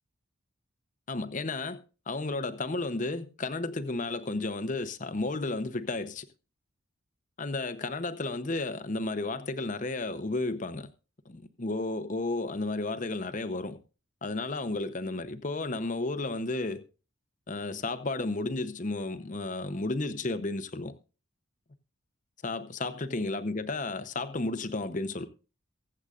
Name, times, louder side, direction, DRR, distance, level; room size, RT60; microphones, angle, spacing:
voice 1, 1.1-6.3 7.4-10.9 11.3-13.8 14.2-16.8 17.5-20.9 22.4-25.3, left 2 dB, 35° left, 0.8 m, -33 dB
23.5 x 7.9 x 2.5 m
head